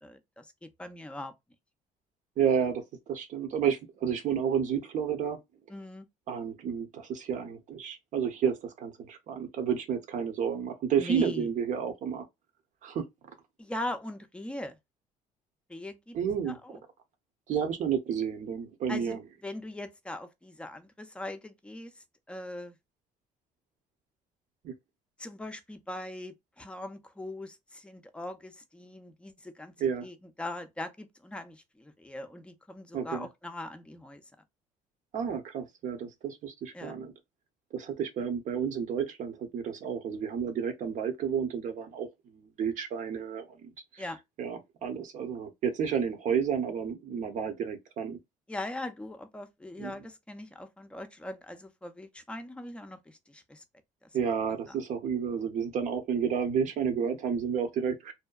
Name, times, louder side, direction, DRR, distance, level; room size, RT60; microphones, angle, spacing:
voice 1, 0.0-1.3 5.7-6.1 11.0-11.5 13.6-14.8 15.7-16.2 16.5-16.8 18.9-22.8 25.2-34.2 36.7-37.0 44.0-44.2 48.5-53.6 54.0-54.1 54.7-54.8, left 1 dB, 5° left, 0.5 m, -41 dB
voice 2, 2.4-2.8 3.1-5.4 6.3-12.3 12.8-13.0 16.1-16.6 17.5-19.2 24.6-24.7 29.8-30.1 32.9-33.3 35.1-37.1 37.7-44.0 44.4-48.2 49.8-49.9 54.1-58.1, right 7 dB, 60° right, 0.8 m, -31 dB
2.7 x 2.2 x 2.3 m
cardioid pair, 105°, 15 cm